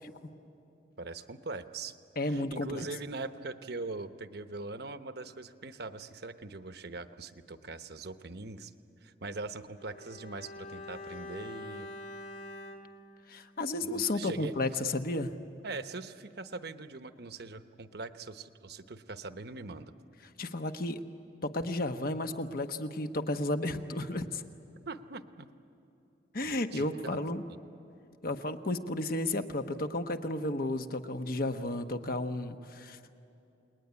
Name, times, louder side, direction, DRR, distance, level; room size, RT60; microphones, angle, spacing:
voice 1, 1.0-2.0 2.2-8.7 9.0-11.9 13.8-14.8 15.6-19.9 24.9-25.5 26.4-27.2 27.7-27.8, right 3 dB, 60° right, 10 dB, 1.0 m, -42 dB
voice 2, 2.2-2.9 13.3-15.3 20.4-21.0 21.4-24.4 26.3-27.4 28.2-33.0, left 2 dB, 55° left, 8 dB, 1.1 m, -33 dB
Bowed string instrument, 9.8-14.2 14.5-14.6, left 2 dB, 80° left, 2.7 m, -46 dB
29.0 x 20.5 x 9.7 m, 2.8 s
head